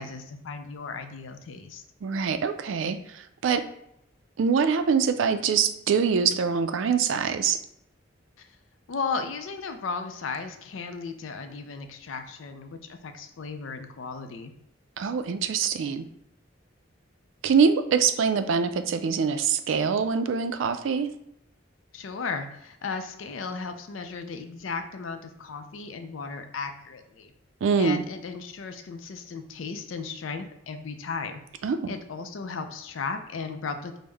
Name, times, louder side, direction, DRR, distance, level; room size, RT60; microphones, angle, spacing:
voice 1, 0.0-1.8 8.4-8.5 8.9-14.5 21.9-27.3 27.8-31.4 31.9-34.0, left 4 dB, 90° left, 7 dB, 0.5 m, -35 dB
voice 2, 2.0-3.7 4.4-7.6 15.0-16.1 17.4-21.1 27.6-28.0 31.6-32.0, right 6 dB, 75° right, 10 dB, 0.3 m, -24 dB
5.2 x 2.1 x 3.3 m, 0.77 s
head